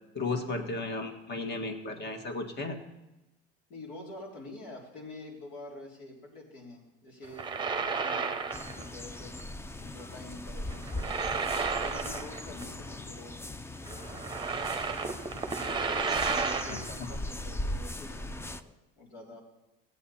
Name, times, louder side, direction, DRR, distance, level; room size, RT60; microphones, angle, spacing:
voice 1, 0.1-2.8 16.7-17.1, left 3 dB, 35° left, 6 dB, 1.7 m, -35 dB
voice 2, 3.7-9.4 9.8-13.4 13.8-14.2 15.7-19.4, left 2 dB, 75° left, -2 dB, 3.6 m, -47 dB
sound 1, 7.2-8.9 9.2-9.4 10.7-12.6 12.9-13.0 13.9-16.9, right 5 dB, 15° right, 1.0 m, -32 dB
sound 2, 8.5-18.6, left 1 dB, 10° left, 0.4 m, -39 dB
16.0 x 8.4 x 4.3 m, 0.99 s
supercardioid pair, 100°, 30 cm